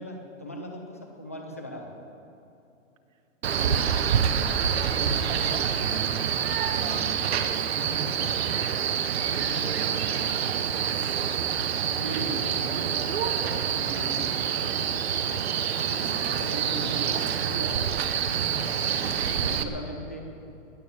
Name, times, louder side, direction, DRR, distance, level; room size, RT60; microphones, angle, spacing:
voice 1, 0.0-1.9 11.9-17.8 19.2-20.2, equal, 10° left, 1 dB, 0.4 m, -39 dB
Male speech man speaking, 3.4-19.6, right 8 dB, 50° right, 1.0 m, -27 dB
voice 2, 3.4-3.8 4.2-4.4 4.7-6.3 6.7-8.9 9.3-10.8 18.2-18.7, right 5 dB, 75° right, 7 dB, 1.7 m, -38 dB
20.0 x 7.0 x 8.7 m, 2.7 s
hypercardioid pair, 170°, 40 cm